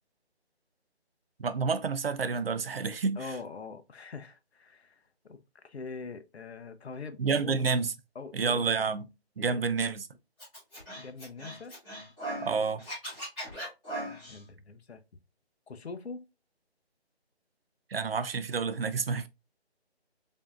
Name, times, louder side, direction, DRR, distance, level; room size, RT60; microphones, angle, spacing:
voice 1, 1.4-3.2 7.2-7.9 8.3-9.0 9.4-10.1 12.4-12.8 17.9-19.3, right 5 dB, 60° right, 0.5 m, -29 dB
voice 2, 3.2-7.6 8.1-8.6 9.4-9.6 11.0-11.7 14.3-15.0 15.7-16.2, left 4 dB, 75° left, 0.7 m, -43 dB
Scratching (performance technique), 10.4-12.5 12.8-14.4, right 1 dB, 5° left, 1.2 m, -39 dB
5.1 x 2.7 x 2.4 m
figure-of-eight pair, 165°, 33 cm